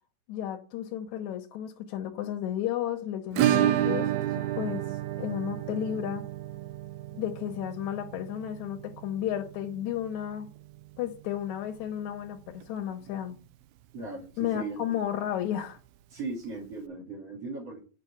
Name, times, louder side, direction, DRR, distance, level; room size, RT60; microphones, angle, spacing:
voice 1, 0.3-4.1 4.6-6.2 7.1-10.5 11.0-13.4 14.4-15.8, left 10 dB, 85° left, 2.4 m, -33 dB
Acoustic guitar / Strum, 3.4-12.0 12.2-12.3 12.6-12.7 13.1-13.2 15.2-15.3 16.4-16.5, right 12 dB, 80° right, 1.8 m, -31 dB
voice 2, 13.9-15.0 16.1-17.8, right 3 dB, 55° right, 3.6 m, -38 dB
9.1 x 5.2 x 7.3 m
omnidirectional pair, 3.3 m